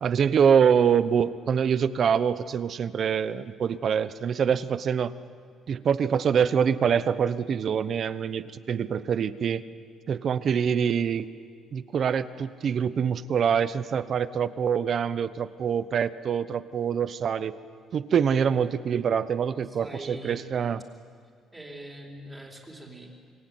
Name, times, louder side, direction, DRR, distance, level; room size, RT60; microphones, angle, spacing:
voice 1, 0.0-5.1 5.7-9.6 10.1-11.3 11.7-17.6 17.9-20.8, right 7 dB, 45° right, 15 dB, 1.0 m, -25 dB
voice 2, 19.6-20.7 21.5-23.1, right 1 dB, 10° right, 1 dB, 4.5 m, -42 dB
27.5 x 23.0 x 9.5 m, 2.1 s
cardioid pair, 130°, 0 cm